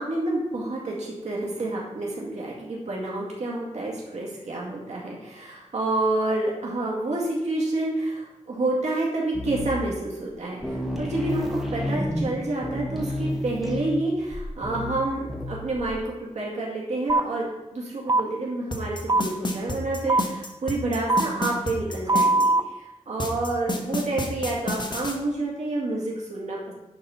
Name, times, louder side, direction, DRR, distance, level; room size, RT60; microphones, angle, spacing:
voice 1, 0.0-26.7, right 2 dB, 70° right, -4 dB, 2.1 m, -29 dB
sound 1, 9.3-9.9 10.3-10.4 10.6-16.0, left 1 dB, ahead, 1.4 m, -31 dB
sound 2, 17.1-17.2 18.1-18.2 19.1-19.2 20.1-20.2 21.1-21.2 22.1-22.6, right 2 dB, 35° right, 0.5 m, -20 dB
sound 3, 18.7-22.5 23.2-25.1, left 2 dB, 40° left, 1.3 m, -29 dB
10.0 x 4.2 x 5.7 m, 1.0 s
wide cardioid pair, 120°, 12 cm